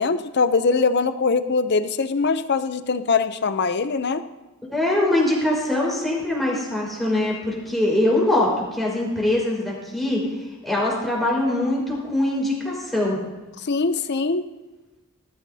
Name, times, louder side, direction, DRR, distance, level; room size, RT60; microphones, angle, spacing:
voice 1, 0.0-4.2 13.6-14.5, left 4 dB, 50° left, 11 dB, 0.6 m, -22 dB
voice 2, 4.7-10.2 10.6-13.2, left 1 dB, ahead, -5 dB, 4.6 m, -22 dB
20.5 x 14.0 x 2.8 m, 1.1 s
head